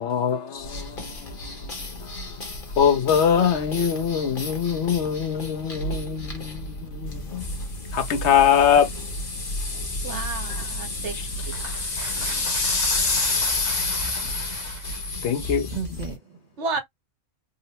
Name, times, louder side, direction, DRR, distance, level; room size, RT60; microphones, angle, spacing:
voice 1, 0.0-1.6 2.0-2.1 2.8-7.3 7.9-8.9 15.2-15.7, left 8 dB, 65° left, 0.9 m, -22 dB
sound 1, 0.6-16.2, left 2 dB, 45° left, 1.2 m, -30 dB
voice 2, 10.0-11.2 11.5-11.6 16.6-16.8, right 4 dB, 70° right, 1.1 m, -31 dB
voice 3, 11.5-15.2 15.7-16.2, right 4 dB, 45° right, 0.7 m, -37 dB
3.8 x 2.1 x 2.8 m
omnidirectional pair, 1.3 m